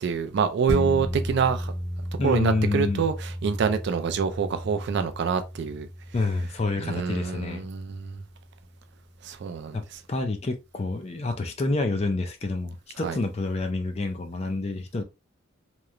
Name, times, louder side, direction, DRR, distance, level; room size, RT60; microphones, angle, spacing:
voice 1, 0.0-1.7 2.2-5.9 6.8-8.2 9.2-10.0 13.0-13.2, right 6 dB, 50° right, 0.3 m, -26 dB
sound 1, 0.7-9.5 9.9-10.0, equal, 15° right, 0.7 m, -35 dB
voice 2, 2.2-3.0 6.1-7.6 9.7-9.8 10.1-15.0, left 3 dB, 30° left, 0.4 m, -28 dB
2.9 x 2.0 x 2.4 m
head